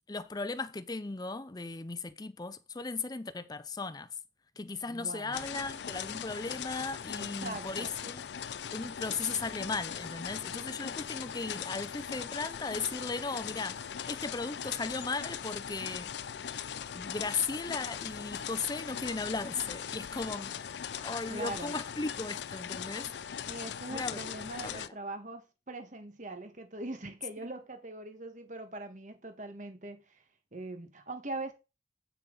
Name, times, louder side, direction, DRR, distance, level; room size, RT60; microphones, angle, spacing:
voice 1, 0.0-4.1 4.6-8.2 8.7-16.1 16.9-20.6 21.0-23.1 23.9-24.9, left 4 dB, 20° left, 0.6 m, -37 dB
voice 2, 4.8-5.5 7.2-8.0 21.3-21.8 23.4-30.2 30.5-31.5, right 2 dB, 45° right, 1.5 m, -42 dB
sound 1, 5.3-24.9, left 8 dB, 70° left, 0.4 m, -40 dB
8.4 x 7.1 x 3.9 m
head